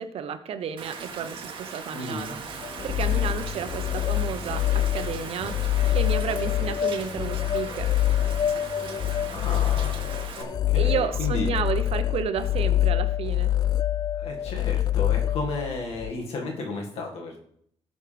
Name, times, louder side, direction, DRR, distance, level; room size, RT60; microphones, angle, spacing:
voice 1, 0.0-2.4 2.8-5.6 5.9-7.9 10.7-13.5, right 7 dB, 70° right, 9 dB, 0.9 m, -31 dB
Rain, 0.8-10.4, right 5 dB, 55° right, 1.9 m, -39 dB
voice 2, 1.9-2.4 9.3-11.5 14.2-17.4, left 3 dB, 75° left, 0 dB, 1.9 m, -34 dB
sound 1, 2.2-10.0, left 1 dB, 10° left, 1.8 m, -46 dB
sound 2, 2.6-16.1, left 12 dB, 40° left, 0.3 m, -25 dB
18.0 x 6.4 x 3.4 m, 0.68 s
cardioid pair, 130°, 10 cm